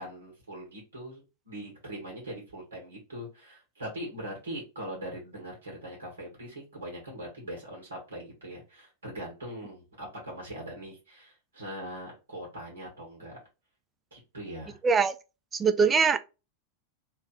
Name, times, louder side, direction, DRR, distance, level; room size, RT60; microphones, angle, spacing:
voice 1, 0.0-13.4 14.1-14.8, right 1 dB, 70° right, 1.5 m, -41 dB
voice 2, 15.5-16.2, right 5 dB, 20° right, 0.4 m, -22 dB
3.2 x 2.6 x 3.8 m
figure-of-eight pair, 90°, 0 cm